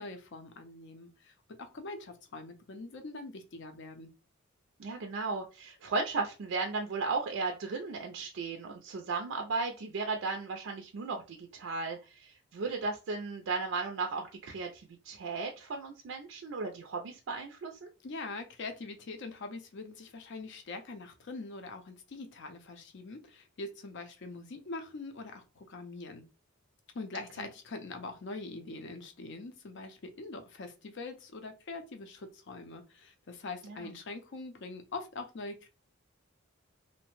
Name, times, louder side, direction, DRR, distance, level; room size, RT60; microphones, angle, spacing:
voice 1, 0.0-4.1 18.0-26.2 26.9-35.7, left 3 dB, 60° left, 6 dB, 0.5 m, -43 dB
voice 2, 4.8-17.9 33.6-33.9, right 4 dB, 65° right, 2 dB, 0.4 m, -35 dB
2.7 x 2.1 x 2.9 m, 0.31 s
head